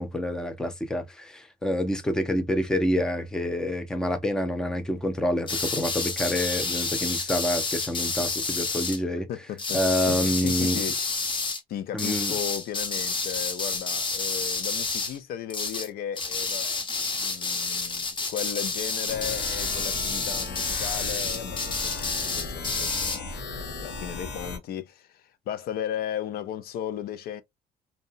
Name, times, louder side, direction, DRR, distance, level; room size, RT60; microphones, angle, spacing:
voice 1, 0.0-9.3 9.7-10.8 11.9-12.3, left 1 dB, 5° left, 0.4 m, -27 dB
sound 1, 5.5-9.0 9.6-11.6 12.0-15.2 15.5-15.9 16.2-23.2, left 4 dB, 30° left, 0.8 m, -29 dB
voice 2, 9.3-11.0 11.7-16.8 17.2-27.4, left 10 dB, 65° left, 0.4 m, -36 dB
sound 2, 19.1-24.6, left 3 dB, 85° left, 0.9 m, -36 dB
2.6 x 2.1 x 2.6 m
cardioid pair, 110°, 17 cm